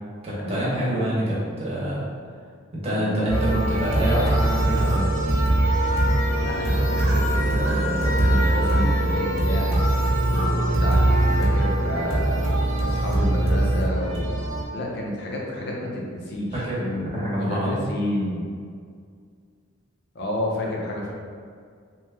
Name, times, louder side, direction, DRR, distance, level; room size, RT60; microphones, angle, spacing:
voice 1, 0.2-2.0 2.8-5.1 16.5-16.8 17.1-17.8, equal, 30° right, -8 dB, 0.9 m, -26 dB
sound 1, 3.3-14.6, right 1 dB, 80° right, 0.8 m, -22 dB
voice 2, 6.3-9.8 10.3-12.4 12.8-14.3 14.7-18.4 20.1-21.1, left 1 dB, 55° left, -2 dB, 0.6 m, -30 dB
2.9 x 2.2 x 3.4 m, 2.1 s
head